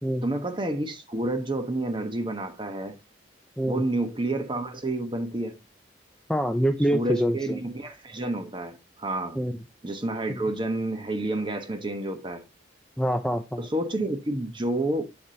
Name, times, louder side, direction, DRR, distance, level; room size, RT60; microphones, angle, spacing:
voice 1, 0.2-3.0 3.7-5.6 6.9-9.4 9.8-12.4 13.6-15.0, right 1 dB, 25° right, 1.1 m, -29 dB
voice 2, 6.3-7.6 9.4-9.6 13.0-13.7, equal, 5° left, 0.5 m, -25 dB
8.0 x 7.1 x 2.8 m
head